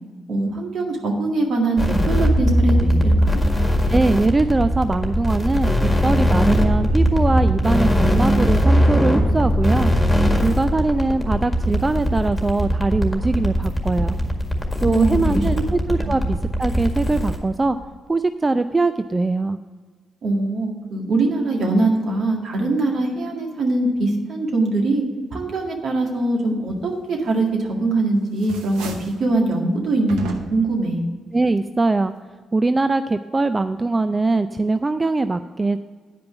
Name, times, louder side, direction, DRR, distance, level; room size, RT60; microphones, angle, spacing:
voice 1, 0.3-3.4 14.8-15.4 16.0-16.1 20.2-25.0 25.3-28.9 29.2-30.3 30.5-31.0, right 2 dB, 65° right, 1 dB, 2.0 m, -22 dB
sound 1, 1.8-17.4, equal, 10° left, 1.9 m, -20 dB
voice 2, 3.9-9.9 10.4-14.2 14.8-17.8 18.1-19.6 31.3-32.1 32.5-35.8, right 3 dB, 30° right, 11 dB, 0.4 m, -21 dB
sound 2, 27.5-28.0 28.3-29.2 30.1-30.8, right 3 dB, 85° right, 0.8 m, -34 dB
9.2 x 5.2 x 6.8 m, 1.5 s
supercardioid pair, 50°, 0 cm